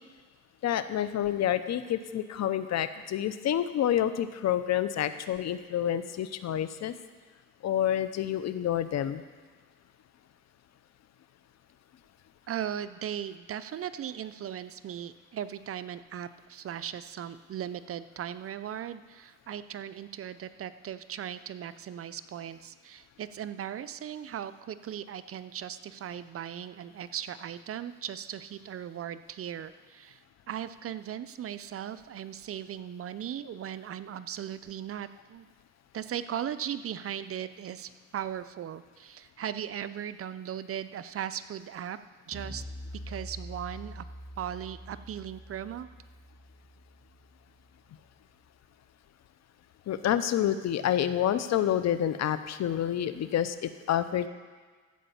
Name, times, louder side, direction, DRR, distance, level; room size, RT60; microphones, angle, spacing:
voice 1, 0.6-6.9 7.6-9.2 49.9-54.3, left 10 dB, 60° left, 12 dB, 0.7 m, -28 dB
voice 2, 12.5-30.2 30.5-35.5 35.9-42.0 42.3-42.6 43.1-44.0 44.4-45.9, right 10 dB, 50° right, 13 dB, 0.5 m, -38 dB
sound 1, 42.3-47.7, equal, 5° right, 2.2 m, -45 dB
14.5 x 5.0 x 7.1 m, 1.5 s
cardioid pair, 90°, 30 cm